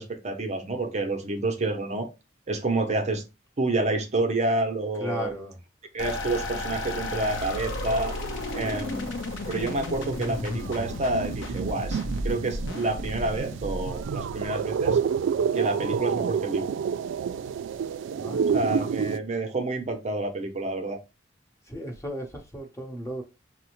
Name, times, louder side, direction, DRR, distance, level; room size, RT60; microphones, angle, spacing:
voice 1, 0.0-2.1 2.5-3.2 3.6-5.3 5.9-8.1 8.5-9.1 9.5-15.0 15.5-16.7 18.5-21.0, right 2 dB, 35° right, 0.6 m, -28 dB
voice 2, 5.0-5.6 8.6-9.1 18.2-18.7 21.7-23.2, equal, 15° left, 0.8 m, -36 dB
sound 1, 6.0-14.4, left 1 dB, 75° left, 0.7 m, -33 dB
sound 2, 7.3-8.8 9.1-19.2, right 7 dB, 80° right, 0.3 m, -30 dB
5.7 x 2.1 x 2.9 m
head